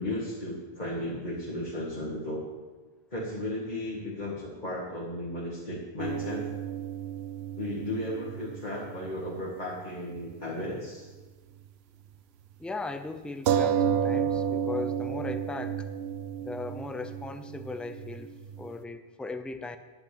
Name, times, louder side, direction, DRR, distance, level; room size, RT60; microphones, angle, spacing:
voice 1, 0.0-2.4 3.1-6.5 7.6-11.1, left 1 dB, 45° left, -8 dB, 2.1 m, -35 dB
sound 1, 6.0-9.9 10.1-10.2 13.5-18.7, right 8 dB, 80° right, 0.8 m, -32 dB
voice 2, 12.6-15.9 16.4-19.8, left 3 dB, ahead, 9 dB, 0.3 m, -38 dB
10.5 x 6.0 x 8.6 m, 1.3 s
omnidirectional pair, 1.1 m